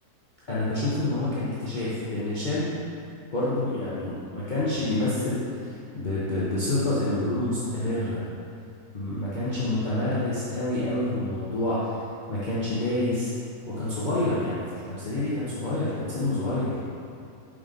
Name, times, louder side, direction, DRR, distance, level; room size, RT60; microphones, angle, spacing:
voice 1, 0.5-2.7 3.3-8.2 8.9-12.0 12.3-13.3 13.7-16.8, left 2 dB, 40° left, -10 dB, 0.9 m, -28 dB
5.2 x 4.9 x 3.7 m, 2.5 s
omnidirectional pair, 1.6 m